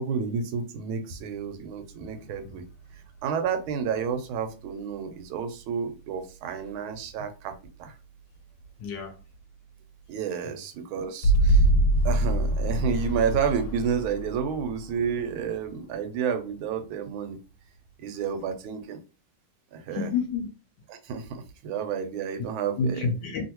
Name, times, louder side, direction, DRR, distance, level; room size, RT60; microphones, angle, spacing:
voice 1, 0.0-2.6 3.2-7.5 7.8-7.9 10.1-11.6 12.0-17.4 18.0-19.0 19.7-20.1 20.9-23.1, right 6 dB, 90° right, 1.5 m, -30 dB
sound 1, 2.0-2.9 4.7-4.8 11.2-15.9, right 1 dB, 90° left, 1.4 m, -24 dB
voice 2, 8.8-9.2 10.4-10.6 19.9-20.5 22.8-23.4, left 4 dB, 70° left, 1.1 m, -29 dB
3.1 x 2.6 x 2.9 m
omnidirectional pair, 2.2 m